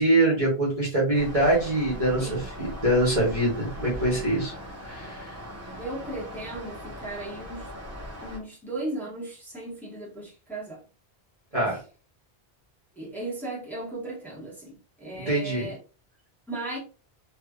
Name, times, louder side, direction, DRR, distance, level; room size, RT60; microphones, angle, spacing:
voice 1, 0.0-4.5 4.9-5.4 11.5-11.8 15.1-15.7, right 1 dB, 35° right, 1.2 m, -24 dB
sound 1, 1.1-8.4, equal, 15° right, 1.0 m, -39 dB
voice 2, 5.8-7.7 8.2-10.8 13.0-15.8 16.5-16.8, right 2 dB, ahead, 1.4 m, -36 dB
3.2 x 3.0 x 2.4 m
omnidirectional pair, 1.1 m